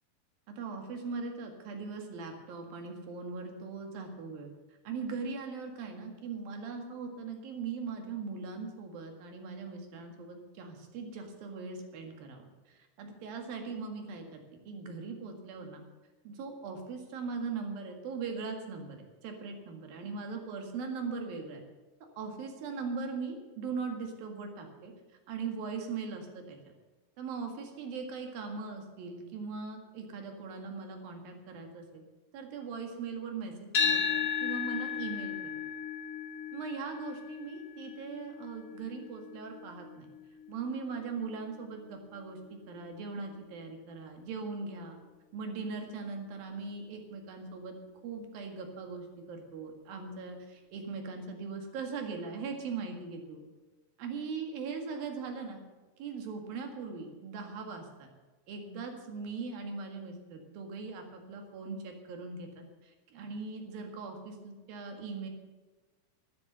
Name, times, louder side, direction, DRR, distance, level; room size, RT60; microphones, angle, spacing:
voice 1, 0.5-4.5 4.9-12.4 12.7-14.4 14.7-15.8 16.3-19.0 19.2-21.6 22.2-24.9 25.3-26.6 27.2-32.0 32.3-35.6 36.5-40.1 40.5-45.0 45.3-47.8 48.0-53.4 54.0-55.6 56.0-58.1 58.5-65.3, right 4 dB, 70° right, 3 dB, 3.6 m, -40 dB
sound 1, 33.7-41.9, left 7 dB, 45° left, 2.4 m, -35 dB
12.0 x 11.0 x 6.7 m, 1.3 s
omnidirectional pair, 4.4 m